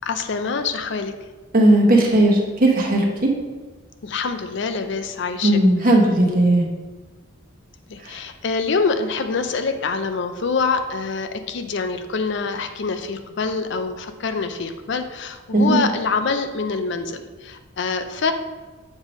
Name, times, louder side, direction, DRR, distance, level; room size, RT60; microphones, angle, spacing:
voice 1, 0.0-1.1 4.0-5.6 7.9-18.3, left 4 dB, 60° left, 8 dB, 0.5 m, -25 dB
voice 2, 1.5-3.3 5.4-6.6 8.0-8.1 15.5-15.8, right 1 dB, 45° right, -1 dB, 1.1 m, -16 dB
7.4 x 3.3 x 5.0 m, 1.3 s
head